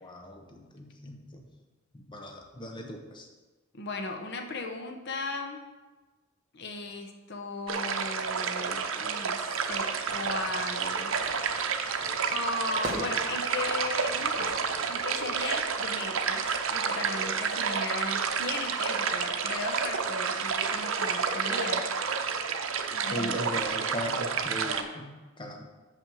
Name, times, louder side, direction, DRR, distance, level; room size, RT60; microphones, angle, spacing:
voice 1, 0.0-1.4 1.9-3.3 23.0-25.6, equal, 25° left, 2 dB, 0.8 m, -38 dB
voice 2, 3.7-5.6 6.5-12.0 12.3-14.6 14.9-21.8 22.9-23.6, left 3 dB, 55° left, 3 dB, 0.9 m, -37 dB
sound 1, 7.7-24.8, right 6 dB, 80° right, 0.7 m, -30 dB
Fire / Fireworks, 10.1-15.6, equal, 20° right, 1.9 m, -43 dB
6.1 x 5.8 x 7.0 m, 1.3 s
head